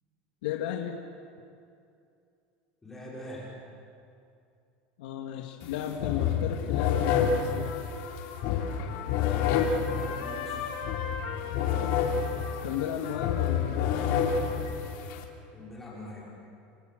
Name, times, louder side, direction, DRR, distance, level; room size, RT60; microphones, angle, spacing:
voice 1, 0.4-1.0 5.0-7.7 12.6-14.1, left 9 dB, 85° left, 1 dB, 2.2 m, -34 dB
voice 2, 2.8-3.5 9.8-10.6 15.5-16.2, left 1 dB, 5° left, -6 dB, 5.6 m, -43 dB
sound 1, 5.6-5.7 6.0-15.2, left 7 dB, 50° left, 3.2 m, -29 dB
Trumpet, 6.9-14.6, left 6 dB, 70° left, 4.3 m, -41 dB
29.0 x 25.5 x 7.9 m, 2.6 s
supercardioid pair, 180°, 4 cm